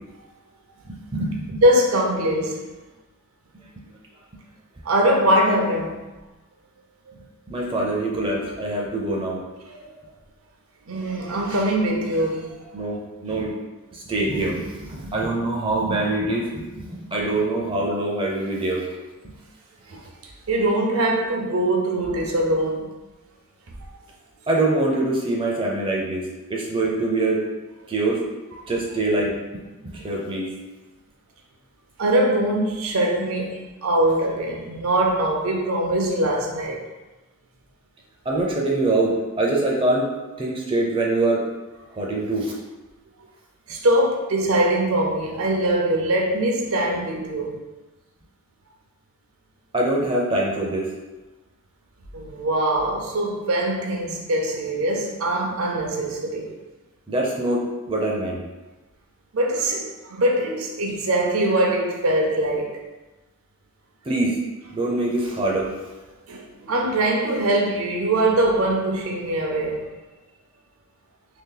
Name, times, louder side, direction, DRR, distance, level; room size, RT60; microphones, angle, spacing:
voice 1, 0.8-1.6 7.5-9.4 12.7-13.5 13.9-18.9 19.2-19.3 24.5-27.4 27.9-28.2 28.7-30.5 38.3-40.1 40.4-41.4 41.9-42.5 49.7-50.9 57.1-58.4 64.1-64.4 64.7-65.7, right 2 dB, 25° right, -2 dB, 0.5 m, -24 dB
voice 2, 1.6-2.6 4.8-6.1 7.1-7.2 9.7-9.9 10.9-12.7 19.9-22.9 32.0-36.8 43.7-47.6 52.1-56.5 59.3-62.7 66.3-69.9, right 1 dB, 65° right, 0 dB, 0.6 m, -22 dB
3.0 x 2.8 x 3.8 m, 1.2 s
head